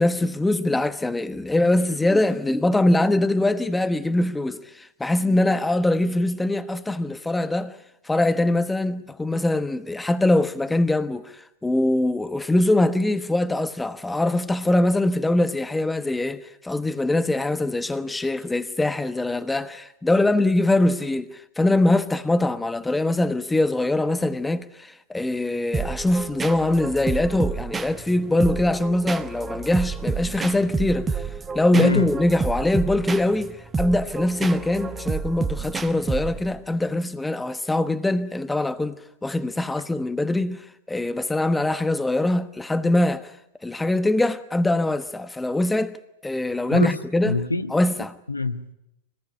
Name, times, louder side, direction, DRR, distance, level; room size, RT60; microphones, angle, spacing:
voice 1, 0.0-7.7 8.0-31.2 31.5-43.3 43.6-46.0 46.2-47.4 47.7-48.1, left 1 dB, 5° left, 1.2 m, -23 dB
sound 1, 25.7-36.6, right 5 dB, 15° right, 1.2 m, -30 dB
voice 2, 31.7-32.1 46.7-47.0 47.3-47.7 48.3-48.7, left 3 dB, 85° left, 1.2 m, -24 dB
25.0 x 19.0 x 10.0 m
figure-of-eight pair, 90°, 0 cm